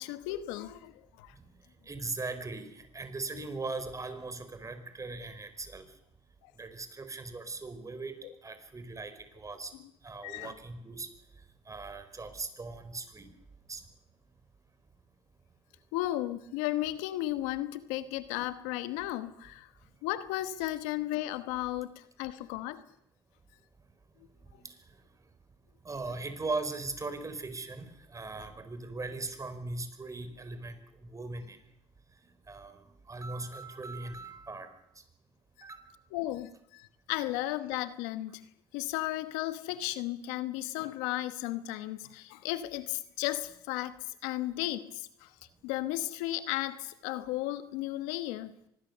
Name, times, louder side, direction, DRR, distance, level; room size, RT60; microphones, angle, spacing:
voice 1, 0.0-1.3 3.3-3.5 6.4-6.5 10.2-10.5 15.9-19.7 20.0-22.8 36.1-38.5 38.7-45.3 45.6-48.6, left 15 dB, 85° left, 1.2 m, -34 dB
voice 2, 1.9-5.9 6.6-8.2 8.4-9.7 10.0-11.1 11.7-13.3 13.7-13.8 25.8-31.6 32.5-32.8 33.1-34.8 35.6-35.8, right 3 dB, 25° right, 4.7 m, -39 dB
24.5 x 21.0 x 6.8 m
supercardioid pair, 70°, 13 cm